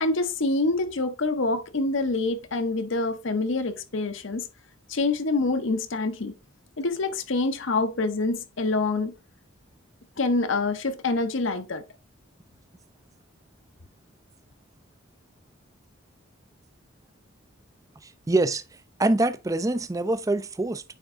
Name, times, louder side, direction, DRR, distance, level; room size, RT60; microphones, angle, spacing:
voice 1, 0.0-4.5 4.9-6.3 6.8-9.1 10.2-11.8, left 3 dB, 65° left, 0.8 m, -26 dB
voice 2, 18.0-18.6 19.0-20.8, right 2 dB, 15° right, 0.4 m, -24 dB
9.2 x 3.5 x 3.6 m
head